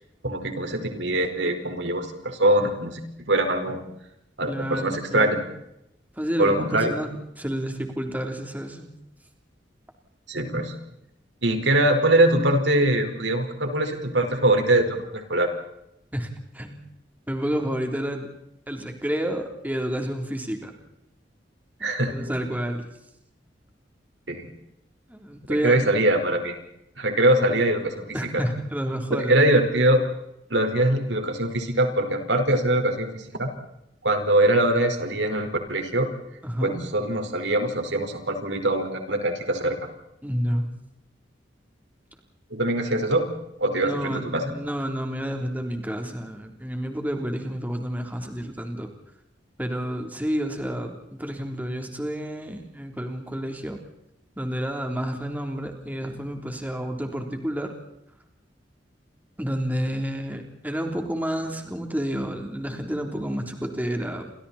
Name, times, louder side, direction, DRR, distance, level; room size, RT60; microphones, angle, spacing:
voice 1, 0.2-3.0 3.3-3.8 4.4-5.4 6.4-6.9 10.3-10.7 11.4-15.5 21.8-22.3 24.3-24.5 25.5-26.6 27.0-28.4 29.1-30.0 30.5-33.5 34.0-36.1 36.6-39.7 42.5-43.2 43.6-44.5, right 1 dB, 85° right, 5 dB, 4.8 m, -23 dB
voice 2, 4.5-5.4 6.2-7.1 7.4-8.9 16.1-16.8 17.3-18.3 18.7-20.7 21.8-22.8 25.1-25.8 28.1-29.5 36.4-36.8 40.2-40.7 43.8-48.9 49.6-53.8 54.4-57.7 59.4-64.3, equal, 10° right, 3 dB, 3.6 m, -30 dB
30.0 x 26.5 x 4.4 m, 0.83 s
head